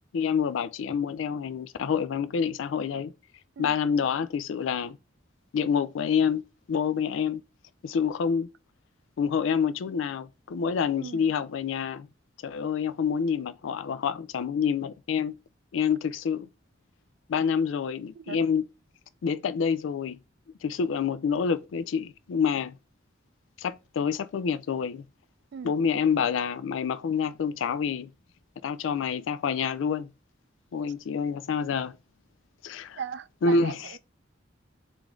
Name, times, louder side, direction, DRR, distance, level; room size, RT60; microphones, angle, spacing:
voice 1, 0.1-3.1 3.6-5.0 5.5-6.4 6.7-7.4 7.8-8.5 9.2-12.1 12.4-15.4 15.7-16.5 17.3-18.7 19.2-20.2 20.6-22.7 23.6-25.0 25.6-28.1 28.6-30.1 30.7-32.0 32.6-33.0 33.4-33.9, left 6 dB, 80° left, 0.3 m, -27 dB
voice 2, 10.9-11.3 18.1-18.4 25.5-25.7 33.0-34.0, right 6 dB, 60° right, 0.3 m, -38 dB
4.9 x 2.5 x 3.6 m
head